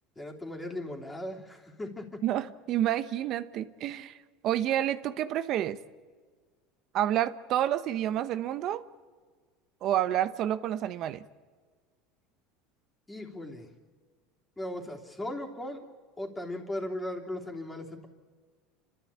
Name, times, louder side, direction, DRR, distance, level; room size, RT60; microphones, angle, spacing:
voice 1, 0.1-2.2 13.1-13.7 14.6-15.8 16.2-18.1, left 1 dB, 10° left, 1 dB, 3.3 m, -37 dB
voice 2, 2.2-4.2 4.4-5.8 6.9-8.8 9.8-11.2, right 12 dB, 50° right, 13 dB, 0.8 m, -29 dB
29.0 x 13.0 x 8.6 m, 1.5 s
supercardioid pair, 120°, 0 cm